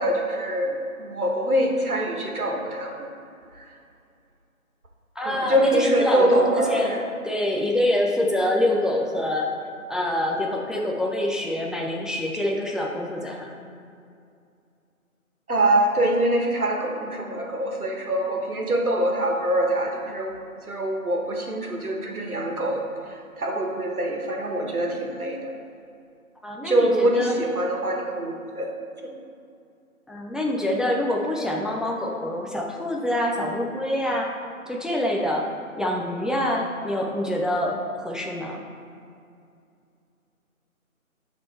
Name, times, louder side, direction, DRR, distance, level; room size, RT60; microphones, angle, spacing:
voice 1, 0.0-3.1 5.2-7.0 15.5-20.3 20.7-22.8 23.4-25.5 26.6-29.1, right 1 dB, 80° right, 1 dB, 1.5 m, -24 dB
voice 2, 5.2-7.0 7.2-9.5 9.9-13.6 26.4-27.3 30.1-34.3 34.7-35.5 35.7-38.6, left 1 dB, ahead, -1 dB, 0.4 m, -25 dB
9.8 x 4.2 x 4.4 m, 2.4 s
figure-of-eight pair, 180°, 43 cm